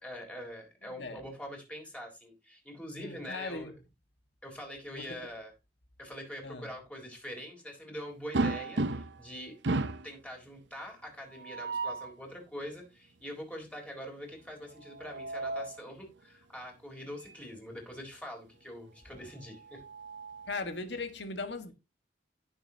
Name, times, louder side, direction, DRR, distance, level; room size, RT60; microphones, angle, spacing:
voice 1, 0.0-3.7 4.4-5.5 6.0-9.5 10.0-19.8, equal, 10° left, 3.9 m, -44 dB
voice 2, 0.8-1.2 3.0-3.7 4.9-5.3 6.4-6.7 20.5-21.7, left 3 dB, 90° left, 1.7 m, -39 dB
sound 1, 8.3-9.3 9.6-10.1 11.3-12.1 14.8-15.8 17.2-17.4 17.8-17.9 19.4-20.6, right 2 dB, 85° right, 0.7 m, -34 dB
16.5 x 6.9 x 2.9 m
head